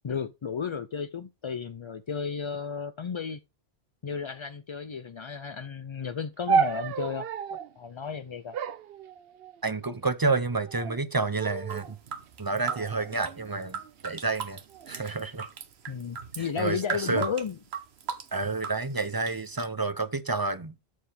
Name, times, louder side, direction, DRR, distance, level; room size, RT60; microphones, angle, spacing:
voice 1, 0.0-3.4 4.0-7.3 7.8-8.6 15.9-17.6, left 6 dB, 45° left, 0.4 m, -33 dB
sound 1, 6.5-7.7 8.5-9.7 10.5-11.0 11.4-11.9 12.6-13.9 14.7-15.1, right 6 dB, 70° right, 0.8 m, -32 dB
voice 2, 9.6-12.0 12.4-15.5 16.4-17.3 18.3-20.7, right 3 dB, 25° right, 0.6 m, -29 dB
sound 2, 11.7-19.7, right 6 dB, 90° right, 1.2 m, -38 dB
13.0 x 4.9 x 3.4 m
omnidirectional pair, 1.1 m